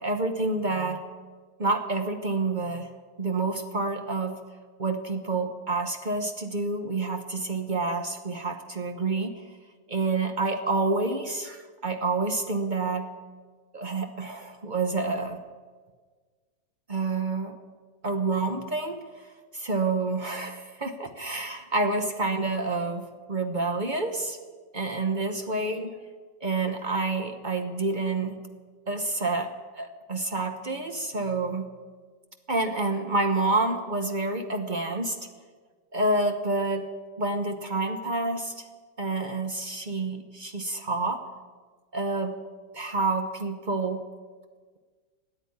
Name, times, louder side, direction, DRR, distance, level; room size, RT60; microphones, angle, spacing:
voice 1, 0.0-1.0 1.6-2.9 3.2-4.3 4.8-9.4 9.9-13.1 13.7-15.4 16.9-17.6 18.0-19.0 19.5-24.4 24.7-26.0 26.4-28.4 28.9-31.6 32.5-35.2 35.9-36.9 37.2-38.6 39.0-41.3 41.9-42.4 42.7-44.0, right 3 dB, 45° right, 6 dB, 0.6 m, -28 dB
14.0 x 8.8 x 9.6 m, 1.5 s
omnidirectional pair, 2.0 m